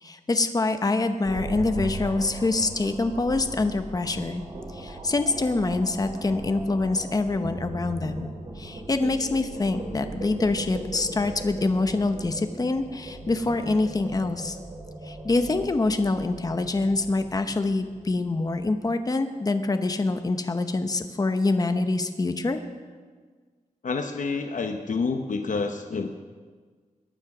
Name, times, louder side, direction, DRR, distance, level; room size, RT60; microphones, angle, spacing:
voice 1, 0.0-4.4 4.7-14.6 15.0-22.6, left 3 dB, 25° left, 7 dB, 0.8 m, -25 dB
sound 1, 1.2-18.5, right 2 dB, 45° right, 4.0 m, -38 dB
voice 2, 23.8-26.1, left 4 dB, 65° left, 5 dB, 0.9 m, -28 dB
22.0 x 9.7 x 6.0 m, 1.5 s
wide cardioid pair, 160°, 14 cm